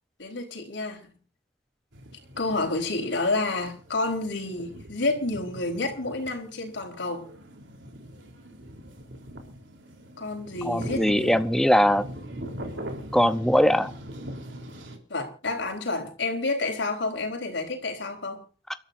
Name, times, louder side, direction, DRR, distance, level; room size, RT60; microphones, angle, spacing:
voice 1, 0.2-1.1 2.4-7.3 10.2-11.4 15.1-18.5, left 2 dB, 80° left, 4.2 m, -29 dB
sound 1, 1.9-15.0, right 1 dB, 85° right, 3.6 m, -42 dB
voice 2, 10.6-12.0 13.1-13.9, equal, ahead, 0.7 m, -21 dB
29.5 x 13.0 x 2.6 m
head